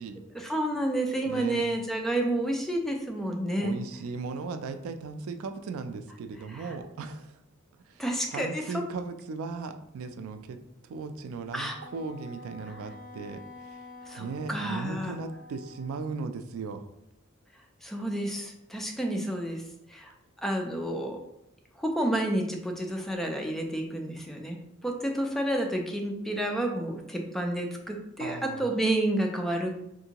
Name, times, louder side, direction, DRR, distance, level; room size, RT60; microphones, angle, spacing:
voice 1, 0.3-3.8 6.5-6.7 8.0-8.8 11.5-11.8 14.1-15.2 17.8-19.6 19.9-20.1 20.4-21.2 21.8-29.7, right 1 dB, ahead, 2 dB, 0.3 m, -30 dB
voice 2, 1.2-1.7 3.6-7.4 7.9-8.0 8.3-10.6 10.9-13.9 14.2-16.9 28.2-28.7, right 4 dB, 80° right, 9 dB, 0.3 m, -37 dB
Wind instrument woodwind instrument, 11.7-16.1, left 2 dB, 60° left, 0.6 m, -48 dB
3.6 x 2.5 x 2.8 m, 0.81 s
head